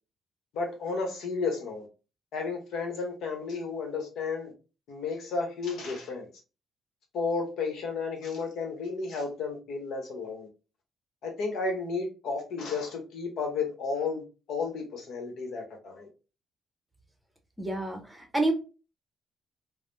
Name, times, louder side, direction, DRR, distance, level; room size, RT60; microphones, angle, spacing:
voice 1, 0.5-1.9 2.3-4.5 4.9-6.3 7.1-10.5 11.2-14.2 14.5-16.1, left 4 dB, 75° left, 0.9 m, -32 dB
voice 2, 17.6-18.5, right 2 dB, 5° right, 0.7 m, -28 dB
3.2 x 2.0 x 2.6 m
cardioid pair, 90°, 0 cm